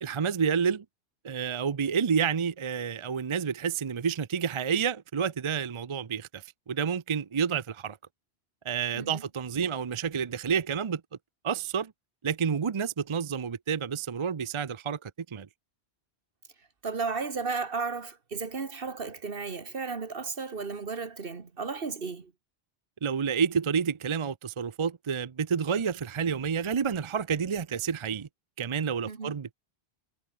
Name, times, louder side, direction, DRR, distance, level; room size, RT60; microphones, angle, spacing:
voice 1, 0.0-0.8 1.2-8.0 8.6-11.0 11.4-11.9 12.2-15.5 23.0-28.3 28.6-29.5, right 6 dB, 35° right, 0.5 m, -29 dB
voice 2, 16.8-22.3 29.1-29.3, right 4 dB, 60° right, 1.8 m, -34 dB
omnidirectional pair, 1.1 m